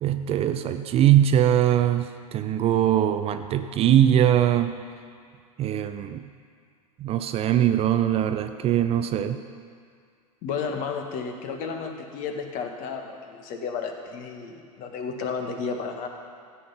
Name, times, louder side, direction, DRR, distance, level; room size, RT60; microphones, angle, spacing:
voice 1, 0.0-4.8 5.6-6.3 7.0-9.4, right 11 dB, 30° right, 9 dB, 0.5 m, -21 dB
voice 2, 10.4-16.1, left 5 dB, 45° left, 4 dB, 1.6 m, -32 dB
13.5 x 8.4 x 5.7 m, 2.1 s
figure-of-eight pair, 90°, 20 cm